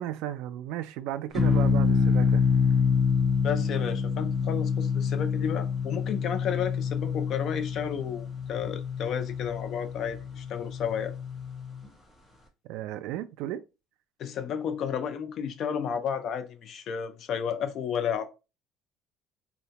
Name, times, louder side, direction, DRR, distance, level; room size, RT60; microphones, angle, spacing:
voice 1, 0.0-2.4 12.7-13.6, right 12 dB, 75° right, 0.3 m, -34 dB
sound 1, 1.3-11.9, left 5 dB, 10° left, 0.9 m, -27 dB
voice 2, 3.4-11.1 14.2-18.3, left 8 dB, 40° left, 0.4 m, -32 dB
3.8 x 2.1 x 2.8 m
cardioid pair, 165°, 0 cm